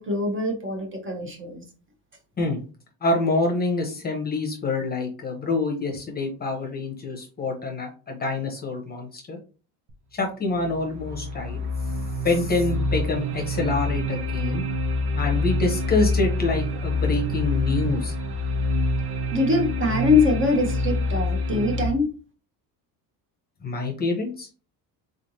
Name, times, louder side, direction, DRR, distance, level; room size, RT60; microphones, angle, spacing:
voice 1, 0.0-1.6 19.3-22.1, left 3 dB, 30° right, 2 dB, 1.0 m, -23 dB
voice 2, 3.0-9.4 10.1-11.6 12.2-14.6 15.1-18.1 23.6-24.5, left 3 dB, 20° left, 2 dB, 0.9 m, -26 dB
sound 1, 9.9-10.0 10.5-21.9, left 1 dB, 65° right, 1.0 m, -26 dB
3.8 x 3.3 x 2.7 m, 0.36 s
cardioid pair, 135°, 43 cm